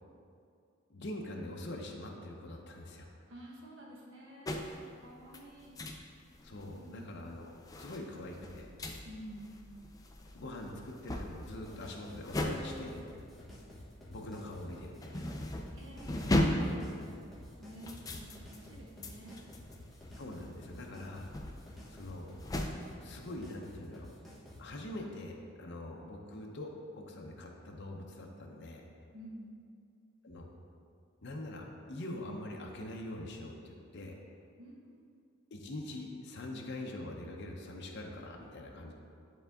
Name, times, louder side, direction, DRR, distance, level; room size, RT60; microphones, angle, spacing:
voice 1, 0.9-3.1 6.4-8.7 10.3-13.0 14.1-15.2 20.2-21.3 21.9-22.3 23.0-24.1 24.6-28.9 30.2-30.5 31.2-34.1 35.5-38.9, left 1 dB, 55° left, 0 dB, 0.7 m, -44 dB
voice 2, 3.3-5.8 6.6-7.1 9.0-9.6 15.7-16.3 16.6-17.2 17.6-19.4 29.1-29.5 34.6-35.1, equal, 60° right, -2 dB, 1.2 m, -50 dB
sound 1, 4.5-4.9 5.3-6.1 6.3-6.8 7.3-14.2 14.5-22.7, left 1 dB, 15° left, 0.4 m, -37 dB
sound 2, 11.4-24.7, left 1 dB, ahead, 1.1 m, -52 dB
10.5 x 3.7 x 3.5 m, 2.4 s
head